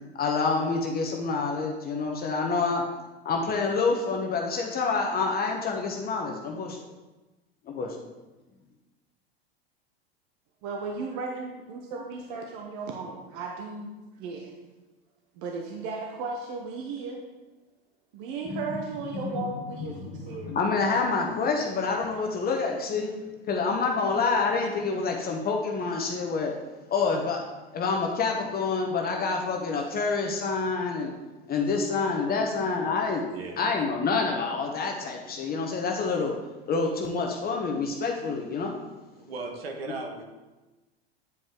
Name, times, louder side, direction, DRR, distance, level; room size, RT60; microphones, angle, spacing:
voice 1, 0.1-2.8 3.2-6.8 7.7-8.0 18.5-18.8 19.1-19.4 20.0-23.1 23.5-26.5 26.9-27.5 27.7-31.1 31.5-33.2 33.6-36.3 36.7-38.7, left 4 dB, 30° left, 1 dB, 1.0 m, -27 dB
voice 2, 10.6-14.6 15.4-17.2 18.1-20.6, right 4 dB, 55° right, 1 dB, 1.0 m, -35 dB
voice 3, 33.3-33.6 39.2-40.2, right 3 dB, 75° right, 2 dB, 1.4 m, -36 dB
9.5 x 5.1 x 3.7 m, 1.1 s
hypercardioid pair, 90°, 30 cm